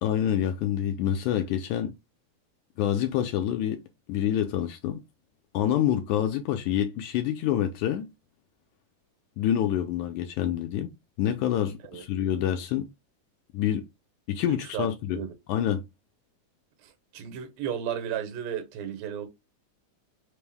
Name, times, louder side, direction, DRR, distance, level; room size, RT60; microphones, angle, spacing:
voice 1, 0.0-1.9 2.8-3.8 4.1-5.0 5.5-8.1 9.4-10.9 11.2-12.9 13.5-13.9 14.3-15.2 15.5-15.8, left 10 dB, 80° left, 1.8 m, -27 dB
voice 2, 14.5-14.9 15.1-15.3 16.8-19.3, right 9 dB, 90° right, 2.6 m, -34 dB
5.3 x 2.0 x 3.3 m
omnidirectional pair, 3.8 m